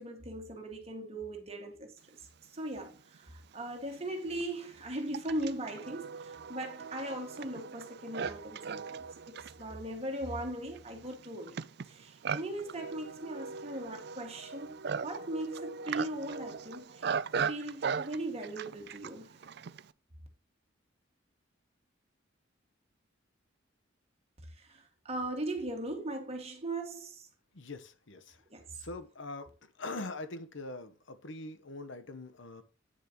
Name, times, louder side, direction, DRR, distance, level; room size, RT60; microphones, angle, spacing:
voice 1, 0.0-11.6 11.9-14.8 15.0-17.1 17.5-19.4 24.4-27.3 28.5-28.6, right 1 dB, 30° right, 2.0 m, -39 dB
Livestock farm animals working animals, 3.1-3.2 4.0-19.9, right 6 dB, 55° right, 0.4 m, -39 dB
voice 2, 27.5-28.4 28.7-29.5 29.8-32.6, left 2 dB, 70° left, 1.0 m, -42 dB
9.3 x 6.7 x 3.0 m
head